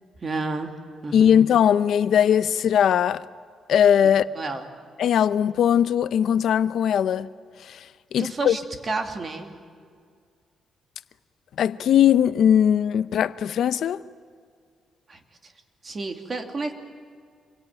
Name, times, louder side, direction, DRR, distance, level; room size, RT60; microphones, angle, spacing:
voice 1, 0.2-0.7 1.0-1.5 4.3-4.7 8.2-9.5 15.1-15.5 15.8-16.7, right 3 dB, 35° right, 2.6 m, -31 dB
voice 2, 1.1-3.3 3.7-4.3 5.0-7.3 7.6-7.9 8.1-8.6 11.6-14.0, left 9 dB, 70° left, 0.7 m, -20 dB
27.5 x 23.0 x 9.0 m
cardioid pair, 125°, 0 cm